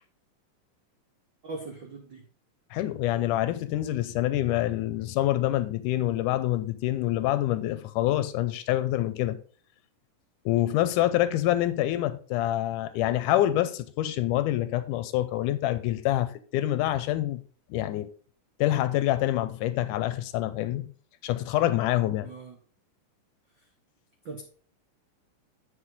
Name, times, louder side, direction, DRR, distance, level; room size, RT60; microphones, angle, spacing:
voice 1, 1.4-2.2 22.2-22.6 23.5-23.7 24.2-24.4, right 3 dB, 80° right, 1.0 m, -40 dB
voice 2, 2.7-9.4 10.5-17.4 17.7-18.1 18.6-20.9 21.2-22.3, left 14 dB, 80° left, 2.0 m, -26 dB
8.3 x 6.6 x 3.7 m
omnidirectional pair, 3.9 m